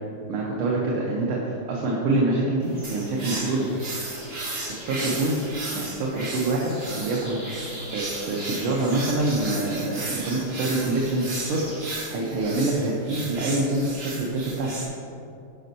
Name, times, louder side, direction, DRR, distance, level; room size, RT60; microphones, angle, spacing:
voice 1, 0.3-3.7 4.8-7.6 7.9-14.8, right 2 dB, 90° right, -3 dB, 1.8 m, -26 dB
sound 1, 2.6-12.1, equal, 20° right, 1.8 m, -42 dB
sound 2, 2.8-14.9, right 2 dB, 40° right, 1.0 m, -35 dB
13.0 x 5.2 x 2.7 m, 2.5 s
omnidirectional pair, 2.3 m